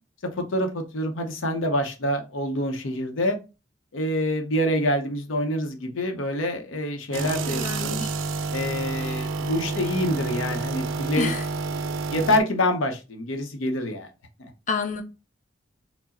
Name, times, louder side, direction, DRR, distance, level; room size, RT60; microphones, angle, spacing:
voice 1, 0.4-3.4 3.9-8.0 8.5-11.3 12.1-14.1 14.4-14.5, left 1 dB, 90° left, 0.7 m, -26 dB
sound 1, 7.1-12.4, right 3 dB, 80° right, 0.4 m, -29 dB
voice 2, 7.4-8.1 11.2-11.5 14.7-15.0, left 4 dB, 40° left, 0.6 m, -29 dB
4.6 x 2.0 x 4.1 m
head